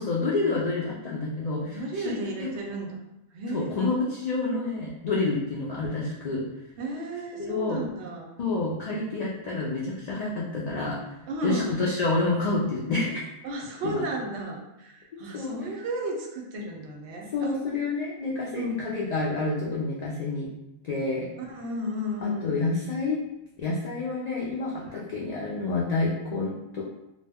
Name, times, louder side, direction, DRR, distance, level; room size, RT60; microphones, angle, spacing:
voice 1, 0.0-2.5 3.5-6.5 7.4-7.8 8.4-11.2 11.4-13.3 13.8-14.0 15.3-15.5 17.3-20.5 20.8-21.3 22.2-23.2 23.6-26.8, left 3 dB, 90° left, -5 dB, 0.3 m, -28 dB
voice 2, 1.7-3.0 3.3-3.7 6.8-8.4 11.3-11.8 13.4-17.5 18.6-18.7 21.4-22.5 24.8-25.0, right 1 dB, 70° right, 1 dB, 0.8 m, -33 dB
2.2 x 2.0 x 3.4 m, 0.89 s
omnidirectional pair, 1.2 m